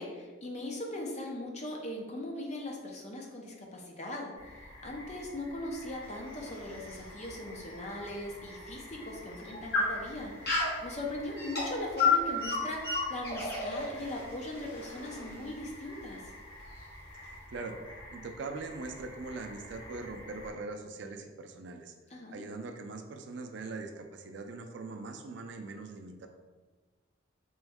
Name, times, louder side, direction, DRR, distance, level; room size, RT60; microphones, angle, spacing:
voice 1, 0.0-16.3 22.1-22.4, left 1 dB, 35° left, 0 dB, 0.6 m, -40 dB
sound 1, 4.3-20.5, left 1 dB, 80° left, 1.4 m, -49 dB
sound 2, 6.0-8.2 8.6-8.7 9.3-10.9 11.4-15.7, left 4 dB, 50° left, 1.0 m, -32 dB
voice 2, 17.5-17.8 18.1-21.9 22.3-26.3, right 3 dB, 60° right, 5 dB, 0.4 m, -41 dB
3.5 x 3.1 x 3.5 m, 1.3 s
head